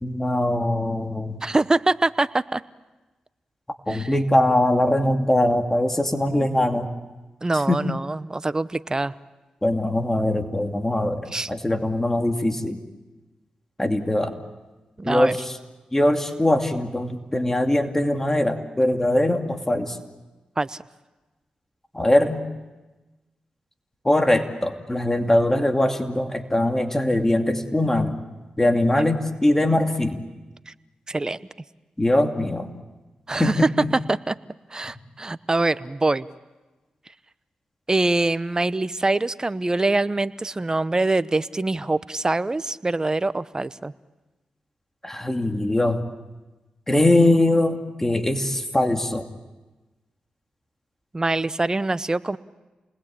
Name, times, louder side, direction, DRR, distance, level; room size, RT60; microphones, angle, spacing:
voice 1, 0.0-1.4 3.9-6.9 7.7-7.8 9.6-12.8 13.8-14.4 15.0-15.5 15.9-20.0 21.9-22.4 24.0-28.2 28.6-30.2 32.0-32.7 33.4-33.9 45.0-46.0 46.9-49.3, left 1 dB, 15° left, 5 dB, 2.6 m, -21 dB
voice 2, 1.4-2.6 3.9-4.1 6.3-6.5 7.4-9.1 11.3-11.5 15.0-15.4 20.6-20.8 30.7-30.8 31.1-31.4 33.3-33.7 34.1-34.4 34.7-36.3 37.9-43.9 51.1-52.4, right 2 dB, 25° right, 15 dB, 0.9 m, -24 dB
28.5 x 20.5 x 8.7 m, 1.2 s
cardioid pair, 50°, 3 cm